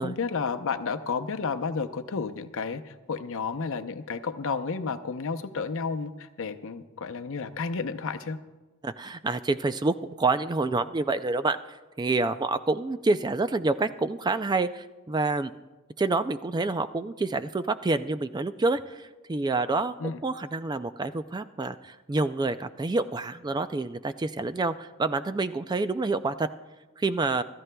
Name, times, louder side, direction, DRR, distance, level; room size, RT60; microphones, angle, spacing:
voice 1, 0.0-8.4 20.0-20.2, left 5 dB, 65° left, 9 dB, 0.7 m, -31 dB
voice 2, 8.8-15.5 16.0-19.9 20.2-26.5 27.0-27.4, right 3 dB, 20° right, 11 dB, 0.3 m, -28 dB
26.5 x 14.0 x 2.3 m, 1.2 s
head